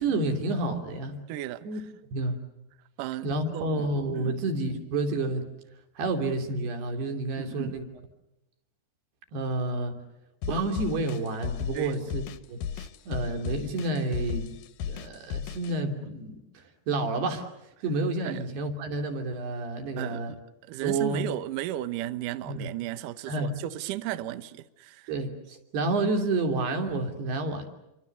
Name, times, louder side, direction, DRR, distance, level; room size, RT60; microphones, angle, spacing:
voice 1, 0.0-1.2 1.6-1.8 2.1-2.4 3.2-5.5 6.0-7.8 9.3-10.0 10.5-12.2 12.5-14.5 14.9-17.5 17.8-20.3 20.8-21.2 22.5-22.7 23.3-23.5 25.1-27.7, right 2 dB, 60° right, 4.8 m, -29 dB
voice 2, 1.3-1.8 3.0-3.9 4.2-4.4 7.4-7.8 11.7-12.2 18.2-18.5 20.0-25.1, right 13 dB, 85° right, 1.8 m, -35 dB
sound 1, 10.4-15.7, left 8 dB, 70° left, 2.2 m, -35 dB
29.0 x 24.0 x 6.9 m
omnidirectional pair, 5.3 m